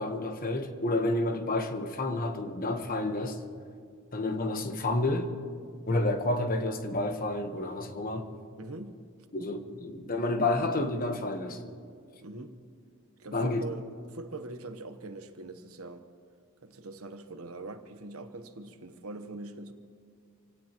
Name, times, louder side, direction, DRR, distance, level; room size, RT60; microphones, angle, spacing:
voice 1, 0.0-3.4 4.1-5.3 5.9-8.3 9.3-11.6 13.3-13.6, left 2 dB, 40° left, 1.2 m, -30 dB
voice 2, 8.6-9.0 12.2-12.6 13.2-16.1 16.6-19.7, right 2 dB, 70° right, 1.1 m, -42 dB
27.0 x 17.0 x 3.0 m
head